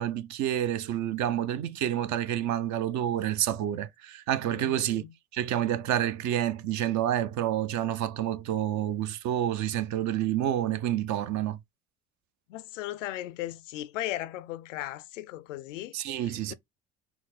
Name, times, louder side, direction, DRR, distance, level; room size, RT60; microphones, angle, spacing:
voice 1, 0.0-5.0 5.3-11.6 15.9-16.5, right 11 dB, 50° right, 0.6 m, -29 dB
voice 2, 4.4-5.1 12.5-16.5, left 14 dB, 80° left, 0.5 m, -37 dB
4.2 x 2.1 x 3.9 m
hypercardioid pair, 65°, 37 cm